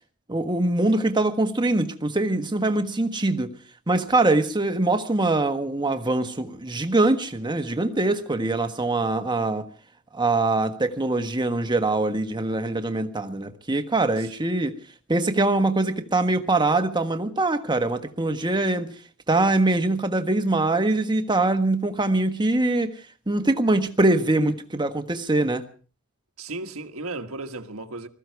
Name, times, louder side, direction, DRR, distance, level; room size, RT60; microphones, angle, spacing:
voice 1, 0.3-3.5 3.9-9.6 10.1-14.8 15.1-18.9 19.3-22.9 23.3-25.6, right 2 dB, 20° right, 1.4 m, -23 dB
voice 2, 26.4-28.1, right 2 dB, 70° right, 1.6 m, -35 dB
20.5 x 14.5 x 4.7 m
head